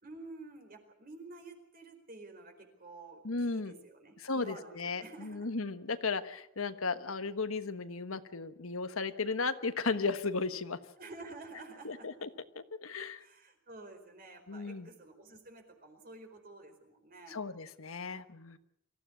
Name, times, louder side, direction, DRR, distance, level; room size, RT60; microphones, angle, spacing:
voice 1, 0.0-5.5 11.0-12.3 13.2-17.4, right 2 dB, 45° right, 5 dB, 4.5 m, -50 dB
voice 2, 3.2-3.7 4.2-10.8 11.8-12.3 12.5-13.2 14.5-14.9 17.3-18.6, left 4 dB, 90° left, 10 dB, 1.3 m, -35 dB
24.5 x 15.0 x 8.6 m, 0.76 s
head